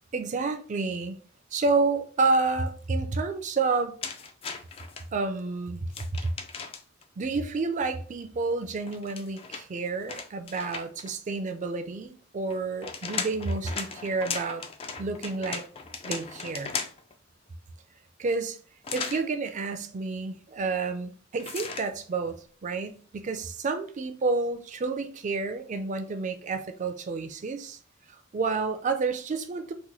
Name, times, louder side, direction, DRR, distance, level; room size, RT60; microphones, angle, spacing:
voice 1, 0.1-1.2 1.5-4.0 5.1-6.3 7.2-14.6 15.0-15.6 16.0-16.7 18.2-18.6 18.9-27.8 28.3-29.7, right 3 dB, 40° right, 0.4 m, -29 dB
sound 1, 4.0-5.0 5.9-7.0 8.8-11.1 12.5-17.1 18.8-19.3 21.4-21.9, left 5 dB, 30° left, 0.3 m, -37 dB
3.0 x 2.2 x 3.9 m
head